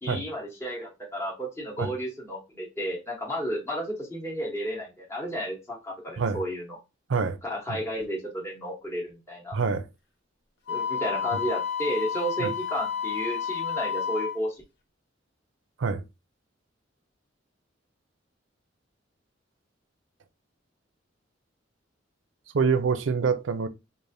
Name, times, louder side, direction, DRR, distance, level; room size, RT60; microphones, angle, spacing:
voice 1, 0.0-6.8 7.4-9.6 10.7-14.6, equal, 15° left, 1.0 m, -32 dB
voice 2, 9.5-9.9 12.4-12.5 15.8-16.0 22.5-23.7, right 5 dB, 80° right, 0.5 m, -25 dB
Wind instrument woodwind instrument, 10.7-14.4, left 7 dB, 65° left, 0.7 m, -30 dB
4.8 x 2.5 x 2.6 m
head